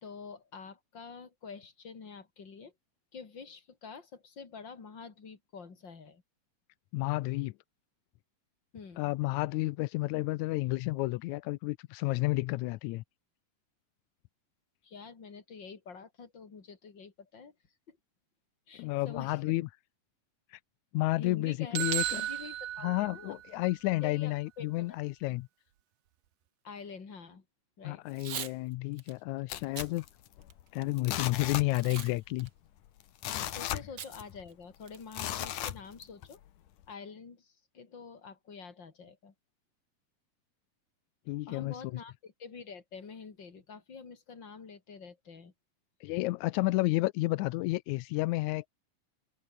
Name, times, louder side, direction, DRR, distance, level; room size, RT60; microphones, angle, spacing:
voice 1, 0.0-2.7 3.1-6.2 8.7-9.1 14.8-17.5 17.9-18.0 18.7-19.6 21.2-23.7 24.0-25.1 26.6-27.4 27.8-28.0 33.4-36.4 36.9-39.3 41.5-45.5, left 5 dB, 35° left, 3.5 m, -47 dB
voice 2, 6.9-7.5 9.0-13.0 18.8-19.7 20.5-20.6 20.9-22.2 22.8-25.5 27.8-30.0 30.7-32.5 33.7-33.8 41.3-41.7 46.0-48.7, left 20 dB, 85° left, 1.6 m, -31 dB
sound 1, 21.7-23.7, right 12 dB, 75° right, 3.0 m, -34 dB
Packing tape duct tape / Tearing, 28.1-28.5 29.0-29.1 29.6-29.9 30.4-31.0 31.7-32.1 32.4-32.5 34.0-34.1 34.5-34.6 34.9-35.2, right 8 dB, 60° right, 1.1 m, -41 dB
sound 2, 29.5-30.6 31.0-32.2 32.5-32.6 33.0-34.5 35.1-36.3 36.8-36.9, left 12 dB, 70° left, 2.9 m, -36 dB
omnidirectional pair, 3.9 m